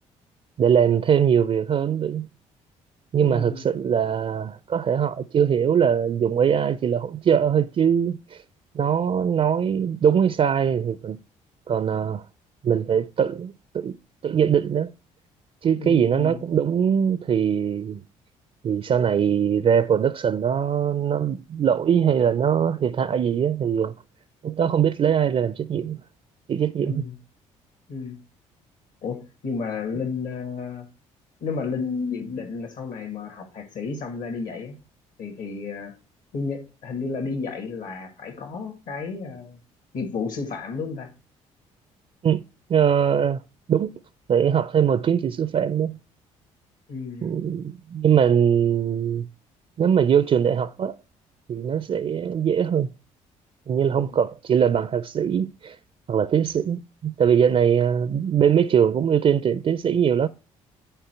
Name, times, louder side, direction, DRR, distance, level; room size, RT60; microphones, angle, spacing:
voice 1, 0.6-2.3 3.1-8.4 8.7-11.2 11.7-12.2 12.6-14.0 14.2-14.9 15.6-18.0 18.6-23.9 24.4-26.0 26.5-27.0 42.2-42.4 42.7-43.4 43.7-43.9 44.3-46.0 47.2-49.3 49.8-51.0 51.5-52.9 53.7-55.8 56.1-60.3, right 8 dB, 40° right, 0.4 m, -21 dB
voice 2, 3.2-3.6 15.8-16.4 26.8-27.2 27.9-28.2 29.0-30.8 31.4-34.8 35.2-35.9 36.3-39.6 39.9-41.1 46.9-47.3, left 4 dB, 65° left, 2.0 m, -32 dB
9.0 x 4.7 x 4.5 m
hypercardioid pair, 55°, 15 cm